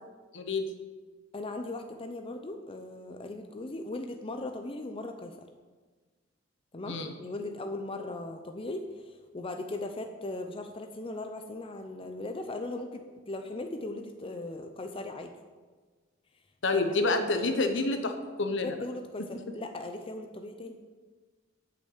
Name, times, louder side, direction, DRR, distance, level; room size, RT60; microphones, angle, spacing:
voice 1, 0.3-0.7 6.9-7.1 16.6-18.8, left 2 dB, 65° left, 6 dB, 1.2 m, -28 dB
voice 2, 1.3-5.5 6.7-15.3 16.7-17.1 18.6-20.8, left 2 dB, 30° left, 5 dB, 0.6 m, -38 dB
8.8 x 6.5 x 8.0 m, 1.4 s
head